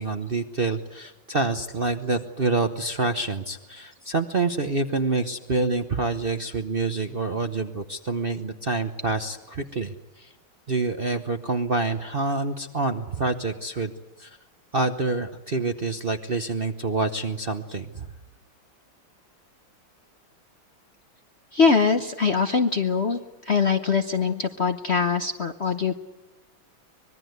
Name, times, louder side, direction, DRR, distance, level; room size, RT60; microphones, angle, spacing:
voice 1, 0.0-10.3 10.7-13.9 14.2-14.4 14.7-18.1, right 3 dB, 40° right, 6 dB, 0.8 m, -27 dB
voice 2, 21.5-25.9, left 5 dB, 45° left, 7 dB, 0.9 m, -23 dB
25.0 x 21.5 x 8.1 m, 1.1 s
omnidirectional pair, 2.2 m